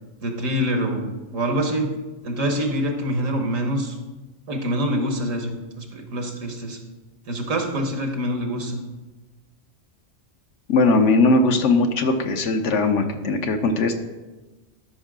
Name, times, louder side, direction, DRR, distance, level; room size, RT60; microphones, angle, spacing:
voice 1, 0.2-1.9 2.2-3.9 4.5-6.8 7.3-8.8, equal, 85° right, 3 dB, 1.7 m, -25 dB
voice 2, 10.7-13.9, left 3 dB, 70° left, 6 dB, 1.1 m, -19 dB
12.5 x 5.4 x 3.7 m, 1.1 s
omnidirectional pair, 1.3 m